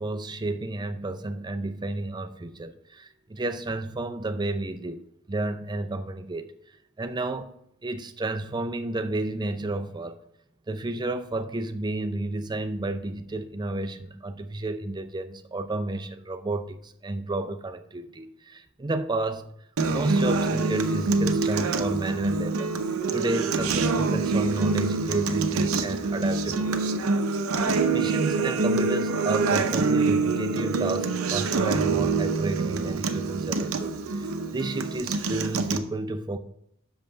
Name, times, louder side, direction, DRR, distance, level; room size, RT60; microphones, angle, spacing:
voice 1, 0.0-6.5 7.0-7.5 7.8-10.2 10.7-19.5 19.9-22.7 23.1-27.0 27.9-33.9 34.5-36.4, right 2 dB, 20° right, 0.5 m, -31 dB
Acoustic guitar, 19.8-35.8, right 3 dB, 75° right, 0.7 m, -25 dB
6.5 x 5.4 x 5.6 m
head